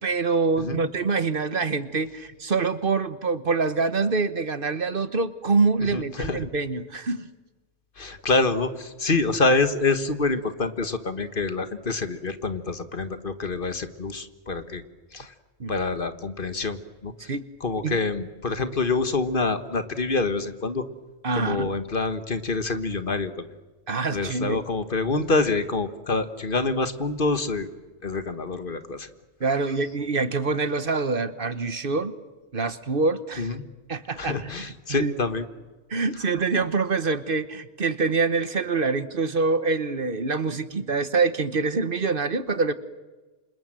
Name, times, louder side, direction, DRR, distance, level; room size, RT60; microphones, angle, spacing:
voice 1, 0.0-7.3 15.6-15.7 17.3-17.5 17.8-18.0 21.2-21.7 23.9-24.6 29.4-32.1 32.5-33.5 33.9-35.1 35.9-42.7, right 4 dB, 55° right, 13 dB, 1.3 m, -25 dB
voice 2, 5.8-6.5 8.0-14.8 15.1-15.3 15.7-17.3 17.6-20.8 21.3-23.4 24.1-27.7 28.0-29.1 33.4-33.6 34.2-35.4, left 3 dB, 50° left, 10 dB, 1.6 m, -26 dB
28.0 x 26.5 x 7.6 m, 1.2 s
omnidirectional pair, 1.1 m